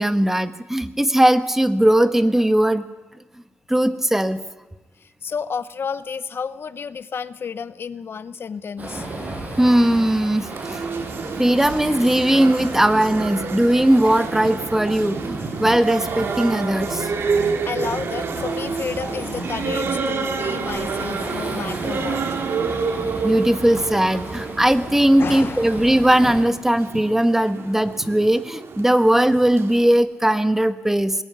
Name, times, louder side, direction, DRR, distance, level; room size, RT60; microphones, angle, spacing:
voice 1, 0.0-2.8 3.7-4.4 9.6-10.5 11.4-17.1 23.2-31.1, right 1 dB, 10° right, 10 dB, 1.2 m, -18 dB
voice 2, 5.0-9.1 17.6-22.2 25.2-25.8, left 6 dB, 55° left, 14 dB, 0.7 m, -31 dB
Waves surf, 8.8-26.5, right 2 dB, 35° right, 7.4 m, -35 dB
sound 1, 10.4-29.9, right 5 dB, 65° right, 1.8 m, -29 dB
Water / Drip, 14.0-20.7, right 4 dB, 80° right, 7.2 m, -45 dB
20.5 x 14.5 x 9.4 m, 1.1 s
cardioid pair, 95°, 5 cm